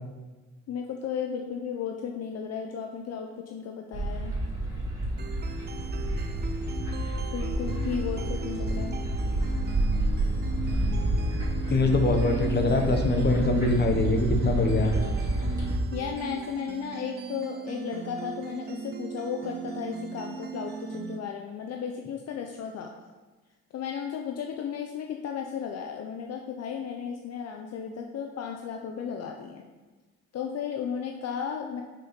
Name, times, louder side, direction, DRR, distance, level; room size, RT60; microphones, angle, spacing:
voice 1, 0.7-4.3 7.3-9.0 15.9-22.9 23.7-29.6 30.3-31.8, left 7 dB, 60° left, 3 dB, 0.6 m, -34 dB
sound 1, 3.9-15.8, right 1 dB, 10° right, 2.3 m, -29 dB
sound 2, 5.2-21.2, right 6 dB, 35° right, 0.5 m, -39 dB
voice 2, 11.7-15.0, left 2 dB, 35° left, 4 dB, 1.0 m, -23 dB
6.2 x 4.3 x 5.2 m, 1.3 s
cardioid pair, 90°, 30 cm